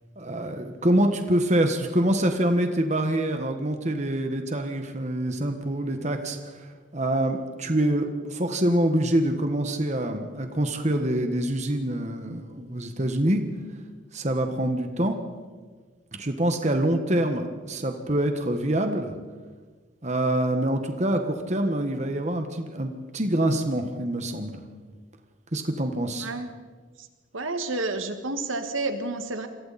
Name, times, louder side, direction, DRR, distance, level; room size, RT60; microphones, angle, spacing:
voice 1, 0.2-6.7 6.9-13.4 14.1-15.2 16.1-19.2 20.0-24.6 25.5-26.3, right 1 dB, 35° right, 6 dB, 1.5 m, -25 dB
voice 2, 27.3-29.5, right 2 dB, 85° right, 7 dB, 2.0 m, -30 dB
28.5 x 23.0 x 4.3 m, 1.4 s
head